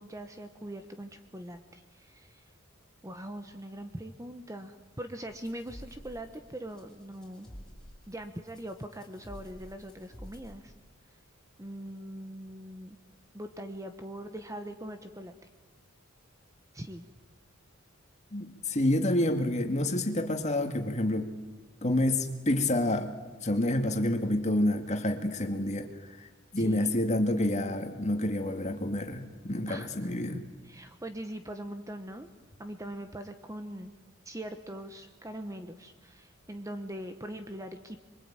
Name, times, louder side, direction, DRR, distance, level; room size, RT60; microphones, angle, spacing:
voice 1, 0.0-2.4 3.0-7.5 8.1-10.7 11.6-13.0 13.3-15.3 16.7-17.1 26.5-26.9 29.7-32.3 32.6-33.9 34.2-38.0, right 1 dB, 15° right, 7 dB, 1.1 m, -42 dB
sound 1, 5.3-10.6, equal, 5° left, 5.3 m, -50 dB
voice 2, 18.3-21.3 21.8-23.1 23.4-25.9 26.5-30.4, left 1 dB, 35° left, 5 dB, 2.3 m, -28 dB
26.0 x 23.5 x 9.0 m, 1.3 s
head